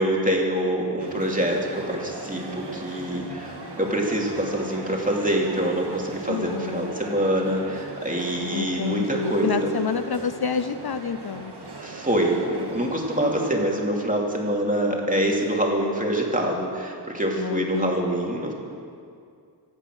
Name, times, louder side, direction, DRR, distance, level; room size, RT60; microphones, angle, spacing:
voice 1, 0.0-3.5 3.8-9.7 11.8-18.5, right 1 dB, 20° right, -1 dB, 2.7 m, -25 dB
sound 1, 1.0-13.5, right 3 dB, 65° right, 2.2 m, -39 dB
voice 2, 6.3-6.9 8.5-11.5 17.4-18.2, left 6 dB, 60° left, 11 dB, 0.6 m, -28 dB
25.0 x 9.0 x 6.2 m, 2.3 s
wide cardioid pair, 75°, 43 cm